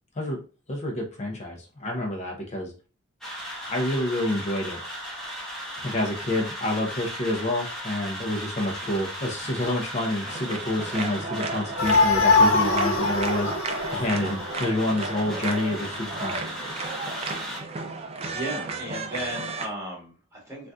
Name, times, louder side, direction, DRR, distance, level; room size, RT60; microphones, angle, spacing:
voice 1, 0.7-2.7 3.7-4.8 5.8-16.4, left 1 dB, 35° left, 0 dB, 0.6 m, -28 dB
sound 1, 3.2-17.6, equal, ahead, 1.1 m, -37 dB
sound 2, 10.3-19.7, right 3 dB, 30° right, 0.4 m, -34 dB
sound 3, 11.8-15.2, left 3 dB, 75° left, 0.5 m, -22 dB
voice 2, 18.3-20.7, right 1 dB, 15° right, -4 dB, 1.6 m, -35 dB
3.9 x 2.4 x 2.3 m, 0.35 s
head